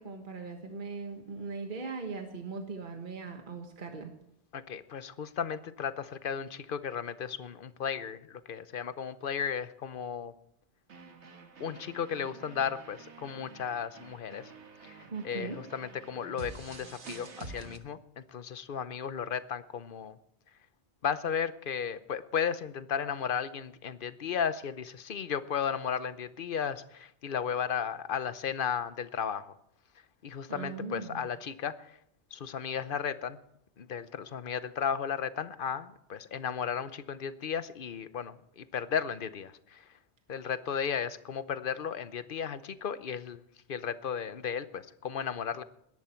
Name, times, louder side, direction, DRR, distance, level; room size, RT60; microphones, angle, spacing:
voice 1, 0.0-4.1 15.1-15.6 30.5-31.2, right 4 dB, 45° right, 4 dB, 1.6 m, -39 dB
voice 2, 4.5-10.3 11.6-14.5 14.8-20.2 21.0-29.5 30.2-32.0 32.3-33.4 33.8-39.9 40.3-43.4 43.7-45.6, left 7 dB, 55° left, 13 dB, 0.9 m, -35 dB
sound 1, 10.9-17.8, right 4 dB, 85° right, 1.7 m, -48 dB
21.0 x 11.0 x 4.5 m, 0.74 s
omnidirectional pair, 1.1 m